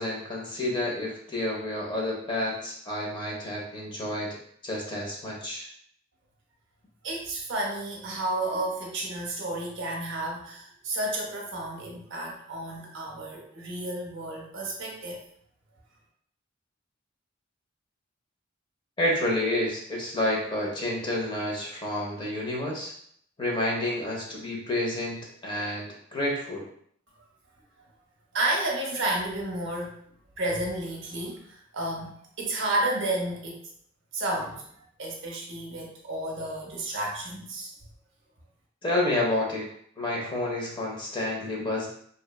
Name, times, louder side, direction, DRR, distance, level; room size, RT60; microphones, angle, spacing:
voice 1, 0.0-4.4 4.6-5.7 19.0-22.9 23.4-26.7 38.8-39.7 40.0-41.9, left 1 dB, 25° left, -3 dB, 0.5 m, -29 dB
voice 2, 7.0-15.2 28.3-29.9 30.4-32.1 32.4-33.6 34.1-34.6 35.0-37.7, right 1 dB, 65° right, -1 dB, 0.6 m, -31 dB
2.7 x 2.1 x 2.2 m, 0.64 s
head